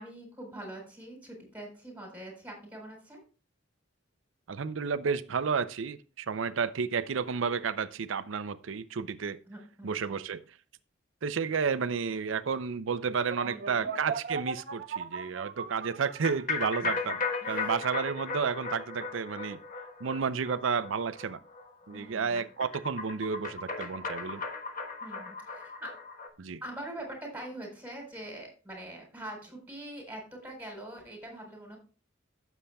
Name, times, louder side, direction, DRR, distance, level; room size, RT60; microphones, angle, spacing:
voice 1, 0.0-3.2 9.5-10.2 13.4-13.9 16.8-17.8 21.9-22.5 25.0-25.9 26.6-31.8, right 1 dB, 10° right, 4.2 m, -44 dB
voice 2, 4.5-9.4 9.8-10.4 11.2-17.2 17.5-19.6 20.0-21.4 21.9-24.4 26.4-26.6, right 5 dB, 85° right, 0.5 m, -31 dB
sound 1, 13.3-16.8, right 5 dB, 55° right, 0.8 m, -38 dB
sound 2, 16.2-26.3, left 4 dB, 45° left, 1.3 m, -36 dB
15.0 x 7.2 x 2.3 m
head